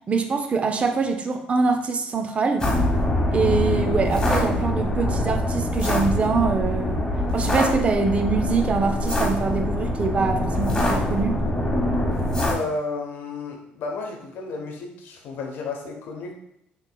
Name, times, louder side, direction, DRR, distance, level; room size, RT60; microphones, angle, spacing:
voice 1, 0.1-2.7 3.3-7.1 7.3-11.4, right 4 dB, 35° right, 5 dB, 0.5 m, -24 dB
sound 1, 2.6-12.5, left 1 dB, 20° left, 1.0 m, -24 dB
voice 2, 12.5-16.3, left 3 dB, 65° left, 2 dB, 0.8 m, -32 dB
4.4 x 3.0 x 2.2 m, 0.78 s
supercardioid pair, 80°, 4 cm